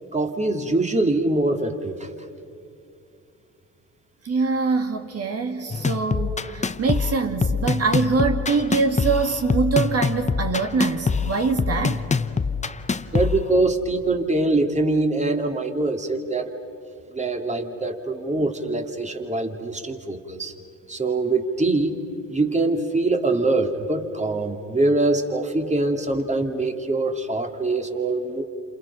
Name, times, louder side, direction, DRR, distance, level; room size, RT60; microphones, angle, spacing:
voice 1, 0.1-2.1 13.1-16.5 17.1-20.5 20.9-21.9 22.3-28.4, right 2 dB, 20° right, 4 dB, 3.0 m, -23 dB
voice 2, 4.2-12.0, right 4 dB, 45° right, 4 dB, 2.6 m, -24 dB
sound 1, 5.7-13.7, left 5 dB, 20° left, 0.9 m, -24 dB
29.0 x 28.0 x 5.8 m, 2.5 s
supercardioid pair, 70°, 33 cm